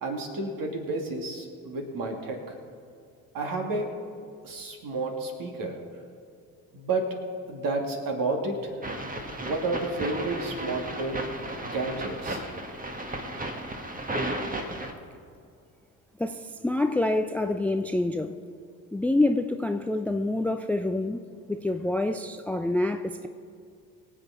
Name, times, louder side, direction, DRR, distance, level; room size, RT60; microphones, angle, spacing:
voice 1, 0.0-2.6 3.3-3.9 4.4-5.8 6.7-7.2 7.5-8.7 9.4-11.2 11.6-12.5, right 2 dB, 50° right, 2 dB, 2.7 m, -31 dB
sound 1, 8.8-14.9, right 1 dB, 20° right, 1.7 m, -34 dB
voice 2, 16.2-18.3 18.9-21.2 21.5-23.3, left 2 dB, 5° left, 9 dB, 0.5 m, -27 dB
23.5 x 8.2 x 4.3 m, 2.4 s
figure-of-eight pair, 55°, 44 cm